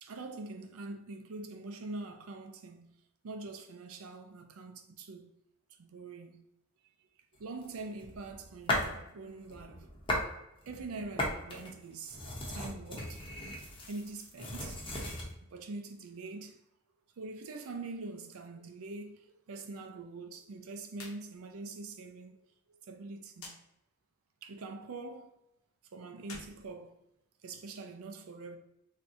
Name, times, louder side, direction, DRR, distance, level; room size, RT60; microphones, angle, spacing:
voice 1, 0.0-5.4 5.8-6.4 7.4-9.9 10.6-12.2 12.5-13.2 13.9-14.9 15.5-16.6 17.2-22.4 22.7-23.6 24.4-25.3 25.9-27.0 27.4-28.6, right 3 dB, 80° right, 0.5 m, -44 dB
sound 1, 7.6-9.0 9.4-10.3 10.6-15.3, left 1 dB, 25° left, 0.7 m, -37 dB
sound 2, 20.9-21.2 21.5-21.6 23.3-23.6 26.2-27.5, left 3 dB, 85° left, 0.8 m, -49 dB
3.4 x 2.7 x 2.6 m
head